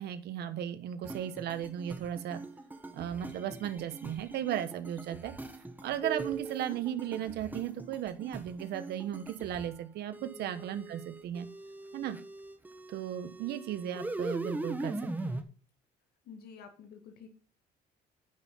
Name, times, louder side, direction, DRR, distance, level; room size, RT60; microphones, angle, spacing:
voice 1, 0.0-2.4 2.9-5.3 5.8-11.5 11.9-12.2 12.9-15.0 15.2-15.4, right 10 dB, 75° right, 10 dB, 1.2 m, -36 dB
sound 1, 1.0-9.7 10.1-15.4, right 2 dB, 10° right, 1.4 m, -41 dB
voice 2, 10.2-10.9 16.2-17.3, left 6 dB, 70° left, 5 dB, 1.9 m, -51 dB
10.5 x 5.7 x 5.6 m, 0.37 s
cardioid pair, 110°, 17 cm